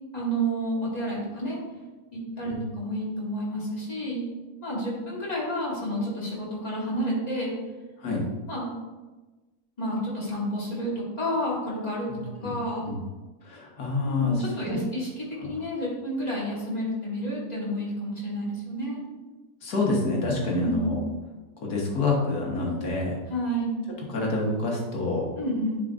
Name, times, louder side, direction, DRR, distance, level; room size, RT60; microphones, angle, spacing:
voice 1, 0.1-1.6 2.1-4.2 4.6-7.5 8.5-8.7 9.8-12.1 12.4-12.9 14.0-19.0 20.5-21.0 23.3-23.8 25.4-25.8, equal, 25° left, -7 dB, 2.3 m, -30 dB
voice 2, 12.1-12.5 12.8-13.0 13.4-14.3 14.6-14.8 15.4-15.5 19.6-21.0 21.6-23.2 24.1-25.3, left 3 dB, 85° left, -2 dB, 1.8 m, -27 dB
9.8 x 4.5 x 2.6 m, 1.2 s
omnidirectional pair, 1.6 m